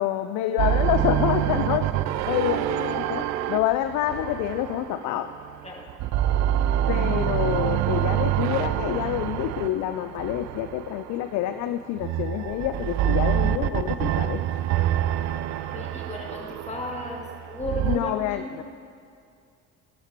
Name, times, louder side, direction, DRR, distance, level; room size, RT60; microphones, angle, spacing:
voice 1, 0.0-1.9 2.3-5.3 6.9-14.4 17.8-18.6, left 12 dB, 45° left, 10 dB, 0.5 m, -27 dB
sound 1, 0.6-5.5 5.9-11.2 12.0-18.0, right 11 dB, 45° right, 0.5 m, -26 dB
voice 2, 15.7-18.6, left 2 dB, 15° left, -2 dB, 2.5 m, -35 dB
13.5 x 12.0 x 2.9 m, 2.4 s
figure-of-eight pair, 50°, 41 cm